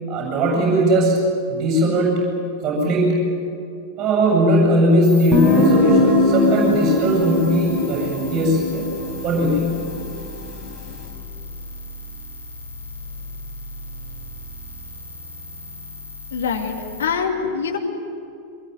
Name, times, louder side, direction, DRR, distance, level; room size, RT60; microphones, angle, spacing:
voice 1, 0.1-1.2 1.5-2.2 2.6-3.2 4.0-8.8 9.2-9.6, right 1 dB, 30° right, -1 dB, 7.8 m, -19 dB
sound 1, 5.0-17.1, left 2 dB, 80° left, 5.3 m, -37 dB
Guitar, 5.3-10.9, left 1 dB, 20° left, 5.0 m, -20 dB
voice 2, 16.3-17.8, left 6 dB, 65° left, 2 dB, 2.6 m, -24 dB
24.5 x 21.5 x 9.6 m, 2.6 s
figure-of-eight pair, 90°, 0 cm